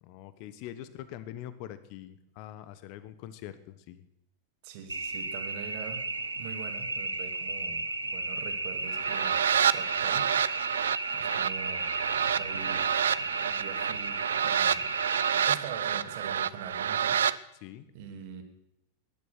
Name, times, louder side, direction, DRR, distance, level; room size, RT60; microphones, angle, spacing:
voice 1, 0.0-4.1 17.6-17.8, left 12 dB, 45° left, 14 dB, 1.1 m, -44 dB
voice 2, 4.6-6.0 6.4-10.3 11.1-17.5 17.9-18.4, right 7 dB, 50° right, 6 dB, 2.7 m, -44 dB
sound 1, 4.9-15.5, right 2 dB, 80° right, 1.1 m, -34 dB
sound 2, 8.9-17.4, right 8 dB, 65° right, 0.5 m, -28 dB
19.0 x 11.0 x 6.6 m, 0.83 s
figure-of-eight pair, 90°, 0 cm